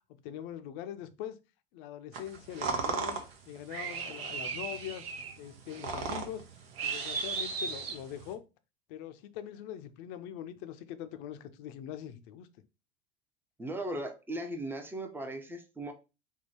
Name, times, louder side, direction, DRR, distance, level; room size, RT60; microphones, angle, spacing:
voice 1, 0.1-1.4 1.7-3.2 3.5-5.1 5.4-6.4 6.8-8.4 8.9-12.5, left 10 dB, 50° left, 0.6 m, -42 dB
sound 1, 2.1-8.3, right 5 dB, 70° right, 0.9 m, -36 dB
voice 2, 13.6-15.9, right 1 dB, 5° right, 0.6 m, -37 dB
3.6 x 2.2 x 4.2 m
figure-of-eight pair, 85°, 31 cm